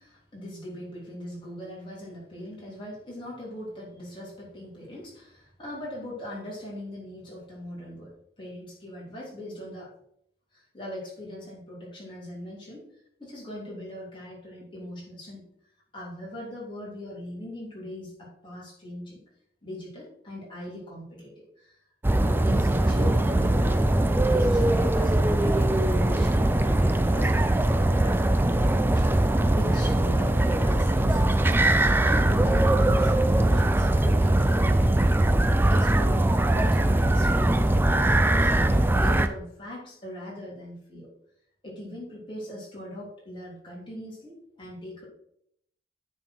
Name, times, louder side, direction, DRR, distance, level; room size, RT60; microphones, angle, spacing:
voice 1, 0.0-8.1 8.4-9.9 10.5-12.8 13.2-15.4 15.9-19.2 19.6-21.7 22.4-23.9 24.2-29.0 29.5-31.6 32.0-35.3 35.7-41.1 41.6-45.0, left 1 dB, 30° left, -5 dB, 3.3 m, -40 dB
sound 1, 22.0-39.3, right 1 dB, 10° right, 0.4 m, -21 dB
9.5 x 4.3 x 4.6 m, 0.72 s
head